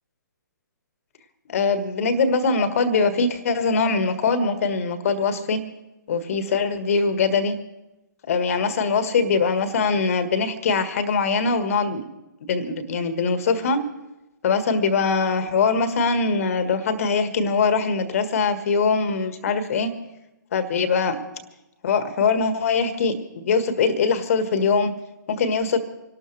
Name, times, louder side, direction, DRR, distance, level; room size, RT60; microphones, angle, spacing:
voice 1, 1.5-5.6 6.1-7.6 8.3-12.1 12.5-13.8 14.4-19.9 20.5-21.2 21.8-24.9 25.3-25.8, left 4 dB, 45° left, 10 dB, 1.5 m, -22 dB
26.5 x 12.5 x 3.3 m, 0.95 s
figure-of-eight pair, 130°, 11 cm